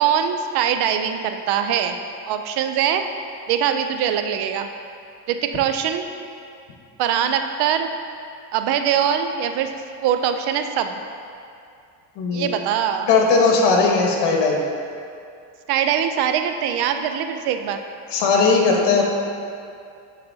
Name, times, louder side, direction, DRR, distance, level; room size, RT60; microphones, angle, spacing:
voice 1, 0.0-2.0 2.3-3.0 3.5-4.7 5.3-6.1 7.0-7.9 8.5-9.7 10.0-11.0 12.3-13.1 15.7-17.8, right 9 dB, 60° right, 7 dB, 0.5 m, -22 dB
voice 2, 12.1-12.5 13.1-14.7 18.1-19.0, left 4 dB, 70° left, 0 dB, 1.3 m, -18 dB
10.5 x 4.1 x 2.7 m, 2.4 s
cardioid pair, 115°, 45 cm